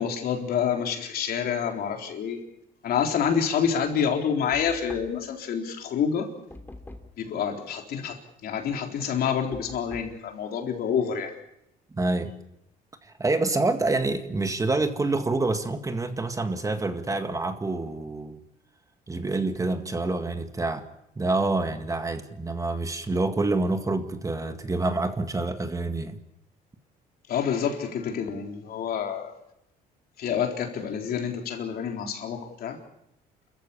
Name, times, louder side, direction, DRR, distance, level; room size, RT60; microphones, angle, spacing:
voice 1, 0.0-2.4 2.8-6.3 7.2-11.3 27.3-29.3 30.2-32.8, left 7 dB, 65° left, 4.0 m, -28 dB
Knock, 4.5-5.4 6.5-7.2 9.5-10.2, left 2 dB, 10° left, 2.9 m, -44 dB
voice 2, 12.0-12.3 13.2-18.4 19.1-20.9 21.2-26.2, right 2 dB, 20° right, 1.9 m, -27 dB
29.0 x 14.5 x 8.6 m
cardioid pair, 110°, 17 cm